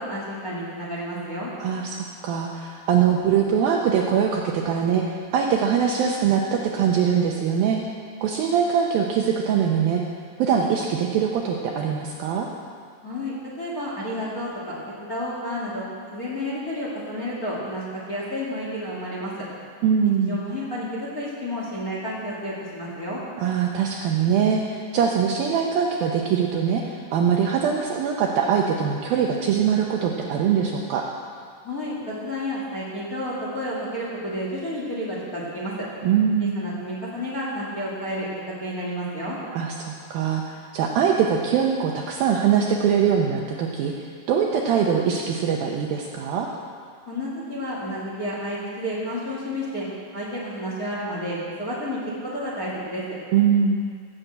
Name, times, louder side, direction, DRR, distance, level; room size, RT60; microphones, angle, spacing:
voice 1, 0.0-1.5 13.0-15.8 16.1-19.3 20.2-23.2 31.6-35.9 36.4-38.3 38.6-39.4 47.0-49.9 50.1-53.2, equal, 35° left, -5 dB, 1.6 m, -31 dB
voice 2, 1.6-2.0 2.2-7.8 8.2-10.0 10.4-12.5 19.8-20.4 23.4-31.0 36.0-36.6 39.5-46.5 53.3-53.8, right 7 dB, 75° right, 0 dB, 2.2 m, -22 dB
16.5 x 7.5 x 7.8 m, 2.2 s
omnidirectional pair, 5.0 m